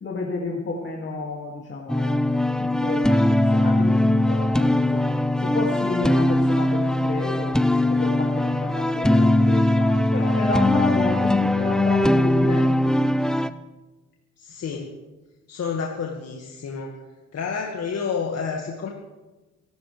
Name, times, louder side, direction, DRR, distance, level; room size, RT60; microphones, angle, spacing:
voice 1, 0.0-5.0 5.4-7.6 7.9-13.0, left 3 dB, 40° left, -1 dB, 2.6 m, -31 dB
sound 1, 1.9-13.5, left 1 dB, ahead, 0.6 m, -20 dB
voice 2, 14.4-14.9 15.5-17.0 17.3-18.9, left 5 dB, 55° left, 0 dB, 2.1 m, -29 dB
25.5 x 13.0 x 3.5 m, 1.1 s
cardioid pair, 90°, 30 cm